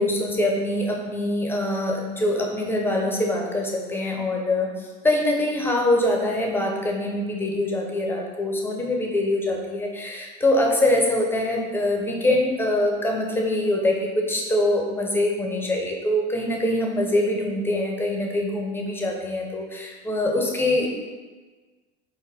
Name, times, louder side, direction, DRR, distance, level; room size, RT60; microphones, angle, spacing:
voice 1, 0.0-20.9, left 1 dB, 10° left, -1 dB, 0.7 m, -24 dB
3.9 x 2.2 x 3.6 m, 1.4 s
hypercardioid pair, 80°, 21 cm